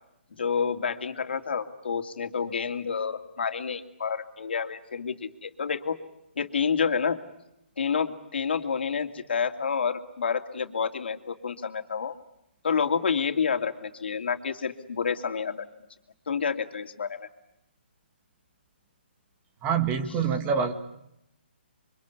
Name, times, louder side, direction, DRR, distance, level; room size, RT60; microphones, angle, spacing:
voice 1, 0.4-6.0 6.4-7.2 7.8-12.2 12.6-15.6 16.3-17.3, left 6 dB, 70° left, 6 dB, 2.6 m, -29 dB
voice 2, 19.6-20.7, right 6 dB, 20° right, 8 dB, 2.0 m, -25 dB
27.5 x 24.5 x 8.4 m, 0.82 s
hypercardioid pair, 150°, 6 cm